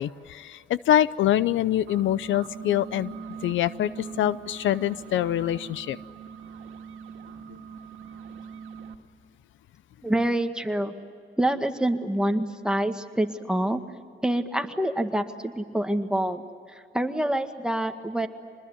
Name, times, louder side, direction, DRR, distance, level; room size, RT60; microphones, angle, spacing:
voice 1, 0.0-3.1 3.4-6.0, left 12 dB, 75° left, 17 dB, 0.7 m, -25 dB
sound 1, 1.7-9.0, right 6 dB, 85° right, 2.1 m, -42 dB
voice 2, 10.0-10.9 11.4-13.8 14.2-16.4 16.7-18.3, right 1 dB, 5° right, 6 dB, 1.9 m, -26 dB
26.5 x 20.5 x 9.5 m, 2.3 s
cardioid pair, 90°, 20 cm